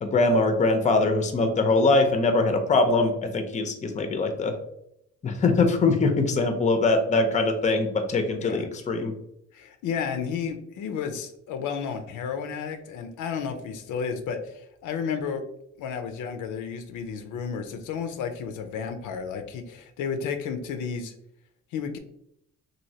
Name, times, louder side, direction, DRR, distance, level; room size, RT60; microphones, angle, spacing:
voice 1, 0.0-4.6 5.2-9.1, left 3 dB, 25° left, 6 dB, 0.5 m, -22 dB
voice 2, 9.5-15.4 15.8-21.1 21.7-22.0, left 6 dB, 80° left, 7 dB, 0.5 m, -32 dB
3.1 x 2.6 x 2.7 m, 0.77 s
cardioid pair, 90°, 30 cm